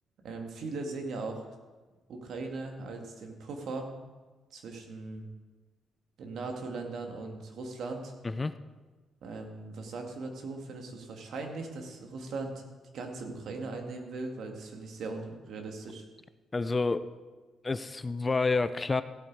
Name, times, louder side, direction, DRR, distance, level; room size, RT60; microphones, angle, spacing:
voice 1, 0.2-1.5 2.1-3.9 4.5-5.3 6.2-8.1 9.2-12.6 12.9-16.0, right 3 dB, 70° right, 3 dB, 2.1 m, -39 dB
voice 2, 16.5-17.0 17.6-19.0, left 3 dB, 25° left, 13 dB, 0.5 m, -28 dB
16.0 x 8.2 x 4.7 m, 1.3 s
cardioid pair, 90°, 0 cm